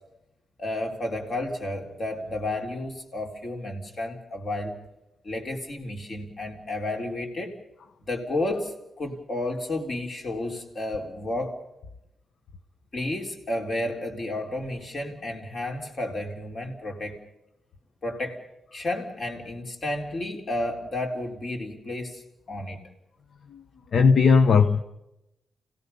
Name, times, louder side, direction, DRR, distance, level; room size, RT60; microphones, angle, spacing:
voice 1, 0.6-4.8 5.2-7.5 8.1-11.6 12.9-17.2 18.0-18.4 18.7-22.2 22.5-22.8, left 1 dB, 40° left, 2 dB, 3.7 m, -31 dB
voice 2, 23.9-24.8, left 5 dB, 55° left, 8 dB, 1.0 m, -18 dB
30.0 x 17.5 x 5.5 m, 0.88 s
wide cardioid pair, 145°, 0 cm